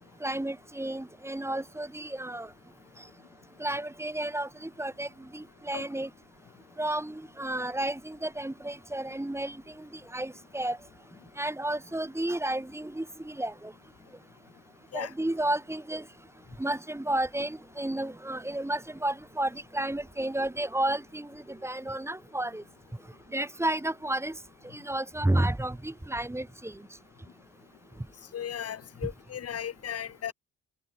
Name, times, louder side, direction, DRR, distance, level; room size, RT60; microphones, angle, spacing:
voice 1, 0.2-2.5 3.6-6.1 6.8-9.6 10.1-10.8 11.4-13.7 14.9-16.0 16.6-22.6 23.3-24.3 24.8-26.7, right 1 dB, 10° right, 5.0 m, -32 dB
voice 2, 28.3-30.3, left 9 dB, 55° left, 1.2 m, -36 dB
cardioid pair, 90°, 30 cm